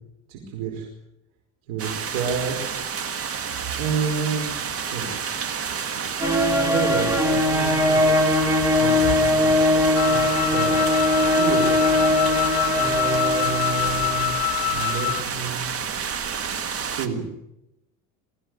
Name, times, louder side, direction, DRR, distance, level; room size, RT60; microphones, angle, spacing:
voice 1, 0.3-0.9 1.7-2.6 3.8-4.5 4.9-5.2 6.4-8.0 8.8-10.8 11.1-11.7 12.7-14.3 14.7-15.7 16.4-17.2, right 5 dB, 80° right, 2 dB, 5.1 m, -30 dB
sound 1, 1.8-17.1, right 7 dB, 35° right, 1.9 m, -30 dB
sound 2, 6.2-14.6, left 1 dB, 10° right, 3.3 m, -21 dB
Wind instrument woodwind instrument, 9.9-15.3, left 21 dB, 70° left, 1.3 m, -26 dB
23.0 x 15.0 x 9.7 m, 0.86 s
cardioid pair, 145°, 40 cm